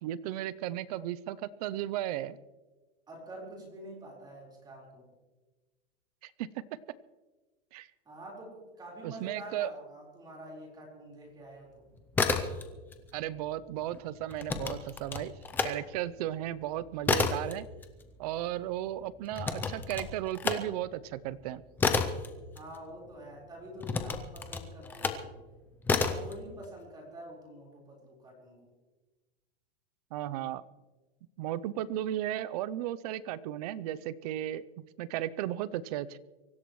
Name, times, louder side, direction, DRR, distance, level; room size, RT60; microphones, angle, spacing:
voice 1, 0.0-2.4 6.2-6.6 7.7-7.9 9.0-9.7 13.1-17.6 18.2-21.6 30.1-30.6 31.4-36.2, right 12 dB, 40° right, 18 dB, 0.6 m, -35 dB
voice 2, 3.1-5.1 8.0-11.9 22.5-25.4 25.9-28.7, right 1 dB, 15° right, -2 dB, 4.2 m, -47 dB
sound 1, 12.0-13.0 13.3-15.7 16.1-23.2 23.8-25.3 25.8-26.3, left 4 dB, 5° left, 0.5 m, -31 dB
24.5 x 15.0 x 3.1 m, 1.2 s
supercardioid pair, 165°, 30 cm